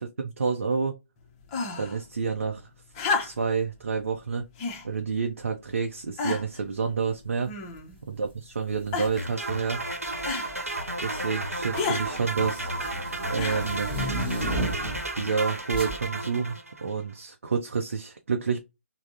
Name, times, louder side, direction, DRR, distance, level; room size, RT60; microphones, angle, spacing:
voice 1, 0.2-1.0 1.8-2.7 3.2-4.4 4.8-7.5 8.1-9.8 11.0-12.7 13.3-13.9 15.1-18.6, right 5 dB, 60° right, 0.5 m, -29 dB
sound 1, 1.5-2.0 2.9-3.6 4.6-4.9 5.6-5.7 6.2-6.6 7.5-8.0 8.9-9.3 10.3-10.5 11.7-12.1 13.4-13.8 14.9-15.0, left 4 dB, 25° left, 0.5 m, -30 dB
sound 2, 8.8-9.1 10.1-10.5 10.8-15.1 15.7-16.0, right 1 dB, 20° right, 1.2 m, -33 dB
sound 3, 9.2-16.9, right 2 dB, 85° right, 0.8 m, -33 dB
3.4 x 2.0 x 2.5 m
figure-of-eight pair, 140°, 8 cm